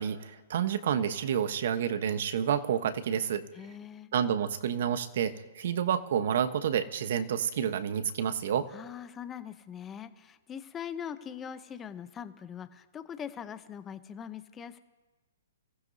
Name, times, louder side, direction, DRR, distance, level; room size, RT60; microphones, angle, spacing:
voice 1, 0.0-3.4 4.1-8.7, right 8 dB, 60° right, 11 dB, 1.0 m, -29 dB
voice 2, 3.5-4.1 8.7-14.8, left 8 dB, 15° left, 12 dB, 0.7 m, -42 dB
25.5 x 15.0 x 2.7 m, 1.2 s
hypercardioid pair, 150°, 0 cm